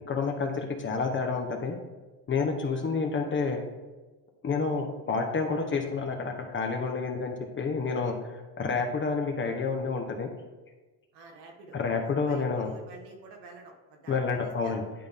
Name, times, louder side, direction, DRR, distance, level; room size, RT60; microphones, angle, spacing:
voice 1, 0.1-1.8 2.3-3.6 4.4-10.3 11.7-12.7 14.1-14.8, left 4 dB, 30° left, 3 dB, 1.0 m, -29 dB
voice 2, 11.1-14.8, right 3 dB, 80° right, 2 dB, 1.6 m, -50 dB
10.5 x 3.8 x 3.6 m, 1.2 s
cardioid pair, 130°, 39 cm